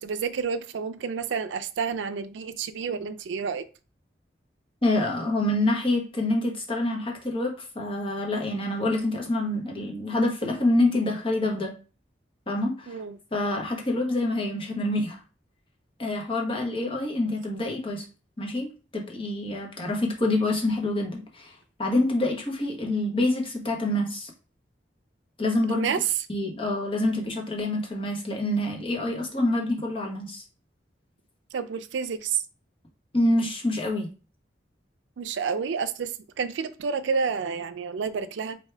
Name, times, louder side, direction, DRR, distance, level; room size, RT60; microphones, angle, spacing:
voice 1, 0.0-3.7 12.9-13.2 25.7-26.0 31.5-32.4 35.2-38.6, right 5 dB, 90° right, 10 dB, 0.4 m, -29 dB
voice 2, 4.8-11.7 12.5-13.0 13.3-15.2 16.0-18.0 18.4-21.5 21.8-24.3 25.4-25.9 26.3-30.4 33.1-34.1, left 1 dB, 30° left, 0 dB, 1.0 m, -26 dB
4.5 x 2.7 x 3.3 m, 0.34 s
head